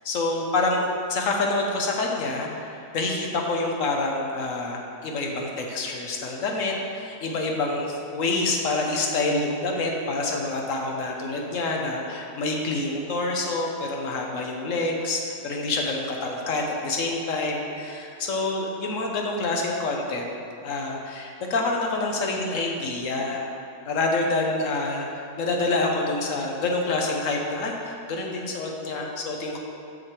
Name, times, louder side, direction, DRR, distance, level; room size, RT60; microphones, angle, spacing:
voice 1, 0.0-20.3 20.6-23.5 23.9-29.6, left 2 dB, 55° left, 0 dB, 1.0 m, -27 dB
6.6 x 6.5 x 4.4 m, 2.5 s
omnidirectional pair, 2.0 m